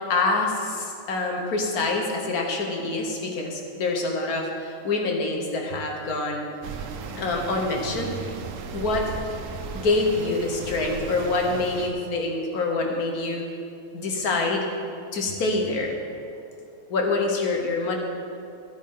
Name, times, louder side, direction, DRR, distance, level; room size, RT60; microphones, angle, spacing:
voice 1, 0.1-6.5 7.2-8.3 8.7-9.1 9.7-13.5 13.9-14.7 15.1-16.0 16.9-18.0, left 3 dB, 70° left, 1 dB, 1.7 m, -26 dB
sound 1, 6.6-11.9, right 5 dB, 65° right, 1.0 m, -36 dB
12.5 x 8.9 x 3.8 m, 2.5 s
omnidirectional pair, 1.6 m